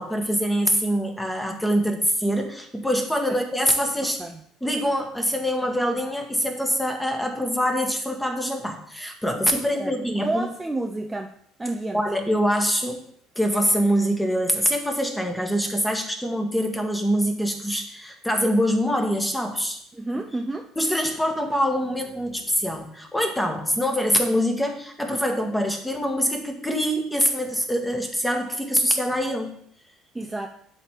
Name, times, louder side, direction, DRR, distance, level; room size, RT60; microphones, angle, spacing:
voice 1, 0.0-4.2 4.6-10.4 11.9-13.0 13.3-19.8 20.8-29.6, equal, 5° left, 4 dB, 1.6 m, -24 dB
voice 2, 4.0-4.4 9.8-11.3 11.6-12.0 19.9-20.7 30.1-30.5, right 2 dB, 15° right, 3 dB, 0.6 m, -30 dB
11.0 x 4.1 x 3.7 m, 0.66 s
figure-of-eight pair, 55°, 0 cm